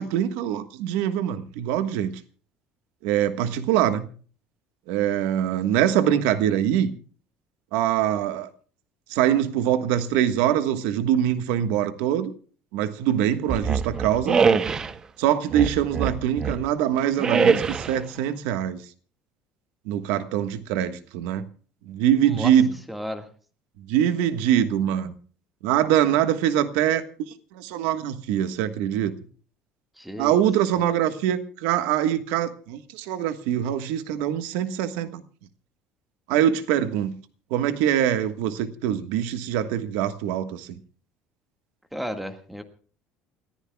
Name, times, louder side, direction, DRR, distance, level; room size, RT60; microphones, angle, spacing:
voice 1, 0.0-2.2 3.0-4.1 4.9-6.9 7.7-8.5 9.1-12.3 12.7-14.4 15.2-18.8 19.8-21.4 21.9-22.7 23.9-25.1 25.6-27.0 27.5-29.1 30.2-35.2 36.3-37.1 37.5-40.7, right 10 dB, 85° right, 1.4 m, -23 dB
sound 1, 13.5-14.9 15.5-16.7 17.2-18.0, right 5 dB, 20° right, 0.7 m, -23 dB
voice 2, 22.9-23.3 30.0-30.4 41.9-42.6, equal, ahead, 1.7 m, -33 dB
29.0 x 14.5 x 2.3 m
cardioid pair, 160°, 3 cm